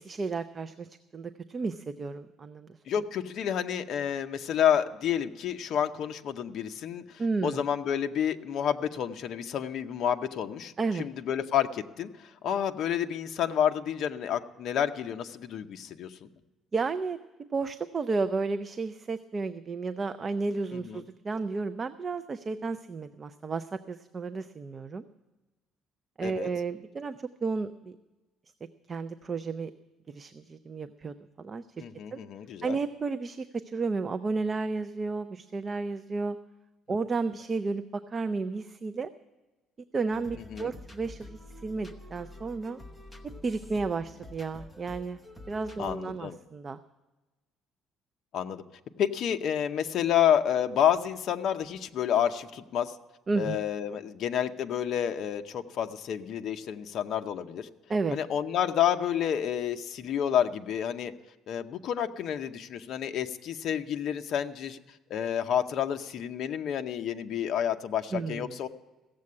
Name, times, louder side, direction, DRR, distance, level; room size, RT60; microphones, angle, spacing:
voice 1, 0.0-2.7 7.2-7.6 10.8-11.1 16.7-17.2 17.5-25.0 26.2-27.2 27.4-27.9 28.9-29.7 30.1-31.8 32.1-32.2 32.6-36.4 36.9-39.1 39.9-42.8 43.4-45.2 45.5-46.8 53.3-53.6 57.9-58.2 68.1-68.5, right 4 dB, 25° right, 11 dB, 0.4 m, -32 dB
voice 2, 2.9-7.0 7.4-12.1 12.4-16.3 20.7-21.0 26.2-26.5 31.8-32.8 40.5-40.7 45.8-46.4 48.3-48.6 49.0-52.9 53.4-57.7 58.1-61.1 61.5-64.8 65.1-68.7, left 9 dB, 50° left, 7 dB, 0.7 m, -29 dB
sound 1, 40.1-46.0, left 1 dB, ahead, 0.9 m, -47 dB
15.5 x 7.5 x 9.5 m, 1.1 s
cardioid pair, 160°, 0 cm